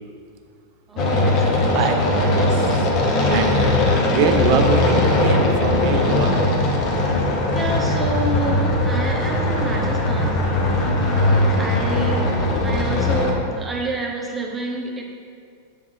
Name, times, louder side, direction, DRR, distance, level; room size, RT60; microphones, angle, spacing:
voice 1, 0.9-1.8 7.5-10.4 10.9-12.3 12.6-15.0, right 2 dB, 15° right, 0 dB, 0.8 m, -29 dB
sound 1, 1.0-13.3, left 2 dB, 35° left, 0.9 m, -19 dB
voice 2, 1.7-2.1 2.3-2.9 3.3-3.8 4.1-6.4, right 6 dB, 45° right, 6 dB, 0.5 m, -24 dB
6.4 x 3.6 x 4.8 m, 2.2 s
figure-of-eight pair, 90°, 0 cm